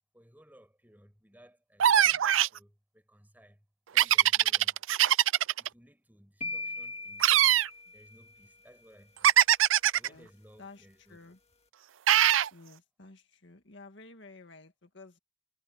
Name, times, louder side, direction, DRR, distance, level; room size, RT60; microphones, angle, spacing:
voice 1, 0.1-4.8 5.4-7.7 7.9-9.3 9.9-11.2, equal, 10° right, 7.4 m, -59 dB
sound 1, 1.8-2.6 4.0-5.7 7.2-7.7 9.2-10.1 12.1-12.5, right 11 dB, 80° right, 0.5 m, -22 dB
sound 2, 6.4-8.5, left 2 dB, 30° left, 2.1 m, -40 dB
voice 2, 10.6-11.4 12.5-15.2, left 3 dB, 60° left, 1.9 m, -52 dB
head